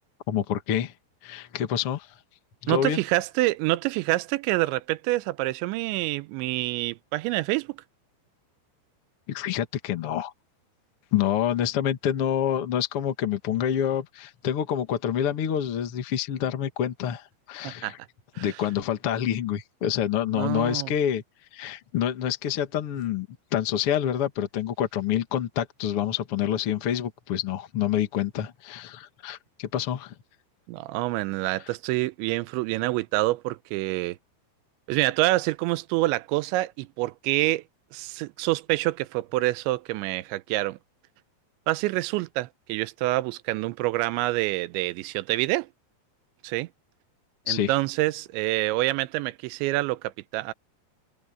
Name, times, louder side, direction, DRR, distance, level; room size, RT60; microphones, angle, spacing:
voice 1, 0.3-0.9 1.2-2.1 2.6-3.0 9.3-10.3 11.1-18.0 18.4-21.2 21.5-30.1 47.5-47.7, left 10 dB, 65° left, 1.4 m, -27 dB
voice 2, 2.7-7.8 17.6-17.9 18.4-18.5 20.3-20.9 30.7-34.2 34.9-37.6 37.9-40.8 41.7-45.7 46.4-46.7 47.5-50.5, right 19 dB, 85° right, 3.0 m, -27 dB
omnidirectional pair, 5.2 m